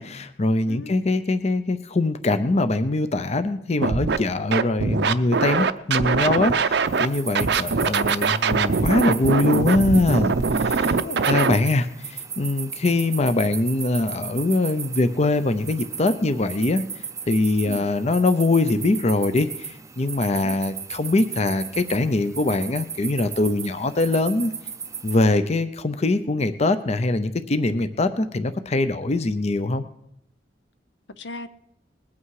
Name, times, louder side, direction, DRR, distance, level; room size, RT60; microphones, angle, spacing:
voice 1, 0.0-10.3 10.6-10.9 11.3-16.8 17.3-24.5 25.0-29.8, left 2 dB, 40° left, 11 dB, 0.6 m, -22 dB
Scratching (performance technique), 3.8-4.2 4.5-7.1 7.3-11.5, right 5 dB, 65° right, 0.6 m, -22 dB
sound 1, 6.9-25.2, right 7 dB, 15° right, 0.5 m, -36 dB
voice 2, 10.9-11.4 17.6-17.9 20.3-20.6 31.2-31.5, left 2 dB, 75° left, 12 dB, 0.7 m, -36 dB
20.5 x 8.5 x 4.8 m, 0.76 s
head